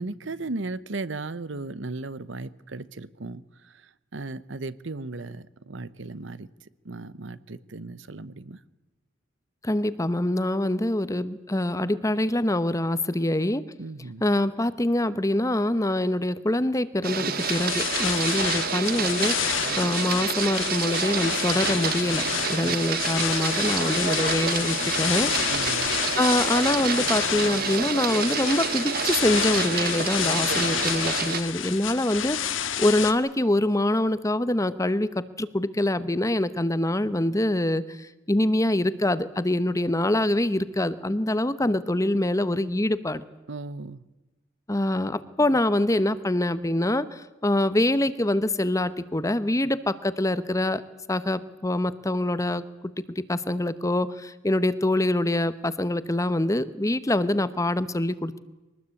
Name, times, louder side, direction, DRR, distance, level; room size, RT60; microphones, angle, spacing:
voice 1, 0.0-6.5 6.8-8.6 13.8-14.2 22.6-22.8 25.5-25.9 43.5-44.0, right 3 dB, 65° right, 17 dB, 0.9 m, -36 dB
voice 2, 9.6-13.6 14.2-25.3 26.2-37.8 38.3-43.2 44.7-50.8 51.1-52.6 53.3-58.4, left 1 dB, 15° left, 15 dB, 0.9 m, -25 dB
Printer, 17.0-31.4, right 6 dB, 50° right, 1.4 m, -29 dB
sound 1, 17.4-33.1, left 9 dB, 80° left, 1.7 m, -29 dB
23.5 x 19.5 x 8.4 m, 1.1 s
head